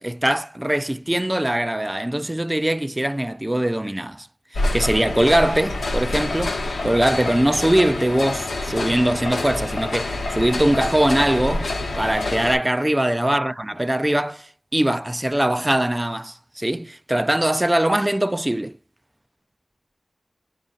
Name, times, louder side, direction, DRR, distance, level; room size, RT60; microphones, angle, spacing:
voice 1, 0.0-4.3 4.5-18.8, right 1 dB, 15° right, 0.3 m, -22 dB
sound 1, 4.5-12.6, left 2 dB, 85° left, 0.9 m, -27 dB
4.6 x 2.6 x 3.8 m
wide cardioid pair, 60°, 0 cm